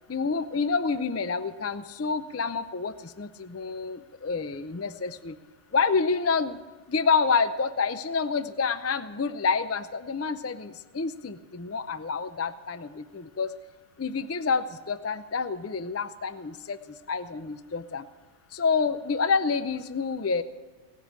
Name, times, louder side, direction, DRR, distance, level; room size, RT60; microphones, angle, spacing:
voice 1, 0.1-5.4 5.7-6.6 6.9-13.5 14.0-16.8 17.1-18.0 18.5-20.4, left 5 dB, 25° left, 12 dB, 0.3 m, -28 dB
17.5 x 8.3 x 8.7 m, 1.3 s
omnidirectional pair, 1.2 m